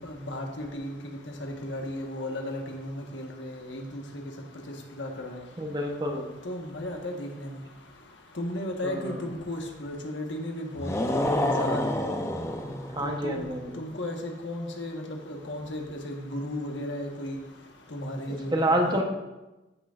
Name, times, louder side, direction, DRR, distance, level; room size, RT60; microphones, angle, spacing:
voice 1, 0.0-1.0 1.4-4.0 5.0-5.4 6.4-7.5 8.4-12.0 13.0-13.4 13.8-17.4 17.9-19.0, left 1 dB, 75° left, 2 dB, 1.3 m, -35 dB
voice 2, 5.6-6.3 8.8-9.1 12.9-13.7 18.5-19.0, right 1 dB, 25° right, 2 dB, 0.9 m, -27 dB
sound 1, 10.8-13.2, left 1 dB, 15° left, 0.6 m, -28 dB
14.5 x 6.3 x 2.5 m, 1.0 s
head